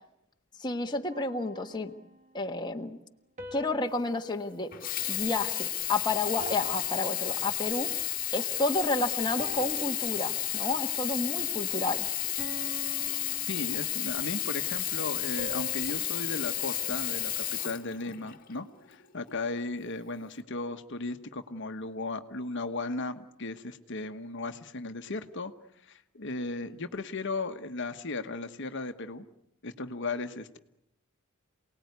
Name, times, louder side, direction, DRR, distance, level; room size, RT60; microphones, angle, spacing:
voice 1, 0.6-1.9 2.3-3.0 3.5-4.7 5.1-7.9 8.3-12.1, left 2 dB, 20° left, 3 dB, 1.4 m, -31 dB
sound 1, 1.1-2.4 3.4-5.9 6.4-8.1 8.7-8.9 9.4-10.9 11.4-11.7 12.4-14.3 15.4-17.8, equal, 35° right, 2.1 m, -47 dB
Sink (filling or washing), 4.7-18.5 19.2-19.3, left 13 dB, 40° left, 1.6 m, -32 dB
voice 2, 13.5-25.5 25.8-29.3 29.6-30.6, left 3 dB, 60° left, 8 dB, 1.2 m, -36 dB
28.5 x 19.0 x 9.6 m, 0.81 s
head